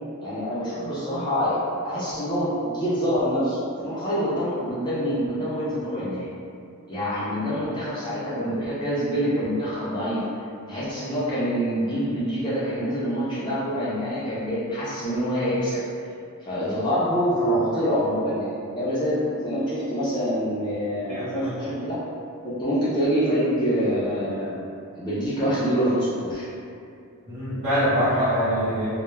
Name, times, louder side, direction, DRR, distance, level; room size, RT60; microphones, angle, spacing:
voice 1, 0.2-6.3 6.9-10.2 10.7-15.8 16.4-21.9 22.4-24.7 25.0-26.4, equal, 20° left, -11 dB, 0.4 m, -26 dB
voice 2, 21.1-21.5 27.3-28.9, equal, 60° right, -15 dB, 0.9 m, -24 dB
2.1 x 2.0 x 3.1 m, 2.5 s
head